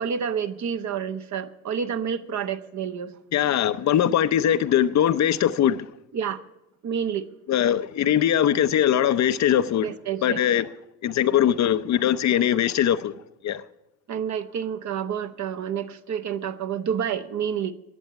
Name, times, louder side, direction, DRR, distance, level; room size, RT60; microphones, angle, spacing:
voice 1, 0.0-3.1 6.1-6.4 6.8-7.3 9.8-10.4 14.1-17.7, right 7 dB, 45° right, 1.0 m, -29 dB
voice 2, 3.3-5.9 7.5-9.9 10.2-10.7 11.0-13.1 13.4-13.6, left 10 dB, 45° left, 0.6 m, -21 dB
10.5 x 8.4 x 9.9 m
hypercardioid pair, 60°, 40 cm